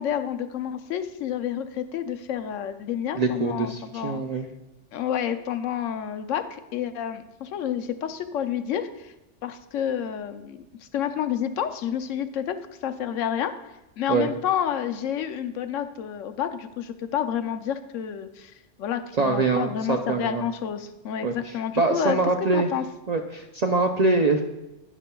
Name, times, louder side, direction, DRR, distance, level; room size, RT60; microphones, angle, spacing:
voice 1, 0.0-4.2 4.9-9.1 9.4-10.6 10.9-12.6 12.8-13.5 14.0-18.5 18.8-22.2 22.5-22.8, left 9 dB, 85° left, 9 dB, 1.0 m, -29 dB
voice 2, 3.1-4.5 14.1-14.3 19.2-20.4 21.2-22.7 23.1-24.4, right 3 dB, 55° right, 4 dB, 0.4 m, -24 dB
11.0 x 10.0 x 2.3 m, 0.97 s
omnidirectional pair, 1.3 m